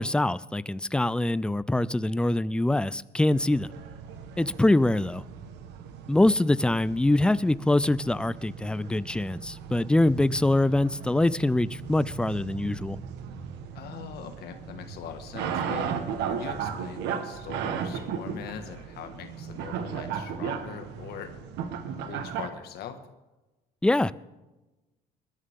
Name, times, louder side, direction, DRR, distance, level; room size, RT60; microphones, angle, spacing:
voice 1, 0.0-3.7 4.4-5.2 6.1-13.0 23.8-24.1, left 1 dB, 5° left, 0.4 m, -24 dB
sound 1, 3.3-22.5, right 7 dB, 90° right, 1.4 m, -36 dB
voice 2, 13.8-15.9 16.3-21.3 22.0-23.0, left 8 dB, 70° left, 1.8 m, -42 dB
21.0 x 12.5 x 3.7 m
cardioid pair, 110°, 17 cm